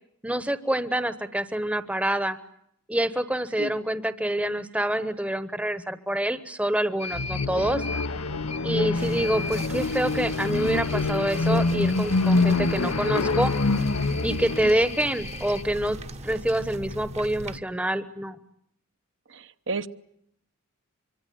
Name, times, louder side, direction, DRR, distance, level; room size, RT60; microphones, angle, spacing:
voice 1, 0.2-2.4 2.9-7.8 8.6-13.5 14.2-18.4, right 1 dB, 5° right, 1.0 m, -26 dB
sound 1, 7.0-15.6, left 4 dB, 30° left, 1.0 m, -39 dB
sound 2, 7.1-14.8, left 3 dB, 90° left, 1.2 m, -25 dB
sound 3, 9.0-17.6, right 1 dB, 30° right, 1.0 m, -40 dB
voice 2, 19.3-19.9, right 4 dB, 60° right, 1.0 m, -32 dB
25.0 x 24.0 x 9.3 m
head